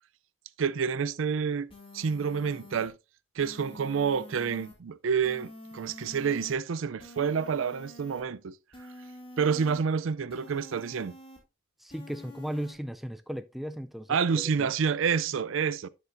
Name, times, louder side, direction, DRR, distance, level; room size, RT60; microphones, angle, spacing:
voice 1, 0.6-3.0 3.4-8.6 9.4-11.2 14.1-15.9, right 6 dB, 80° right, 0.4 m, -28 dB
sound 1, 1.7-2.9 3.4-4.7 5.2-6.5 7.0-8.2 8.7-9.8 10.3-11.4 11.9-12.7, left 1 dB, 30° left, 2.3 m, -48 dB
voice 2, 11.8-14.7, equal, ahead, 0.4 m, -37 dB
10.5 x 6.9 x 2.6 m
head